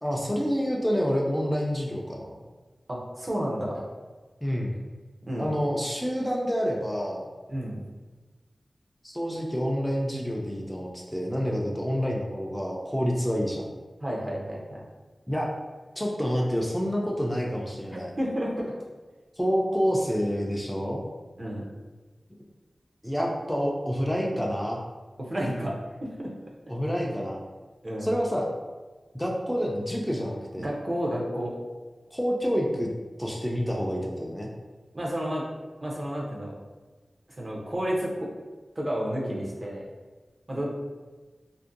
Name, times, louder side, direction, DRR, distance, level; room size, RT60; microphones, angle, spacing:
voice 1, 0.0-2.4 4.4-4.9 5.4-7.3 9.0-13.7 15.3-15.5 16.0-18.1 19.4-21.0 23.0-24.8 26.7-27.4 28.0-28.5 29.1-30.7 32.1-32.9 33.2-34.5, equal, 5° left, -2 dB, 0.4 m, -28 dB
voice 2, 2.9-3.9 5.3-5.5 7.5-7.8 14.0-14.8 17.9-18.7 21.4-21.7 25.2-25.7 26.0-26.3 27.8-28.1 30.6-31.6 34.9-35.4 35.8-36.5 37.4-38.3 38.8-39.8 40.5-40.7, equal, 45° right, -3 dB, 0.6 m, -31 dB
2.5 x 2.1 x 2.5 m, 1.3 s
cardioid pair, 45°, 0 cm